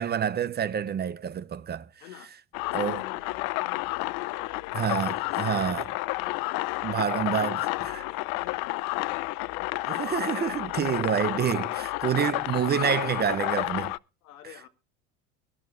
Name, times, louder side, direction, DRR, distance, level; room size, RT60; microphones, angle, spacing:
voice 1, 0.0-1.9 2.7-3.0 4.7-5.9 6.8-8.0 9.9-13.9, right 8 dB, 25° right, 0.5 m, -28 dB
sound 1, 2.5-14.0, left 22 dB, 55° left, 0.6 m, -31 dB
voice 2, 2.6-6.5 6.9-7.4 7.9-10.3 10.8-11.1 14.2-14.7, left 13 dB, 85° left, 1.7 m, -47 dB
23.0 x 12.0 x 2.5 m
supercardioid pair, 100°, 42 cm